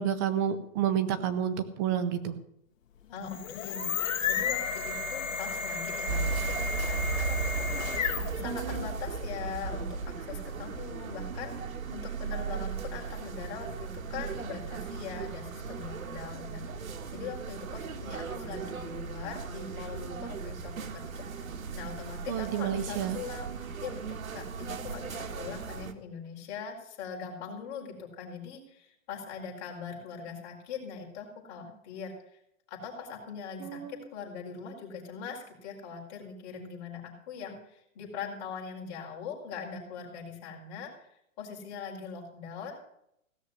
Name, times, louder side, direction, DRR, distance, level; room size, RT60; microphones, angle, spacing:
voice 1, 0.0-2.3 8.4-8.9 22.3-23.2 33.6-34.1, right 9 dB, 15° right, 9 dB, 0.6 m, -30 dB
voice 2, 3.1-7.8 8.3-16.6 17.1-21.5 21.7-32.4 32.7-40.9 41.4-43.0, left 6 dB, 30° left, -1 dB, 4.6 m, -42 dB
sound 1, 3.2-8.5, left 5 dB, 65° left, 2.1 m, -32 dB
sound 2, 6.1-25.9, right 5 dB, 75° right, 1.8 m, -36 dB
17.0 x 6.4 x 9.5 m, 0.75 s
hypercardioid pair, 165°, 41 cm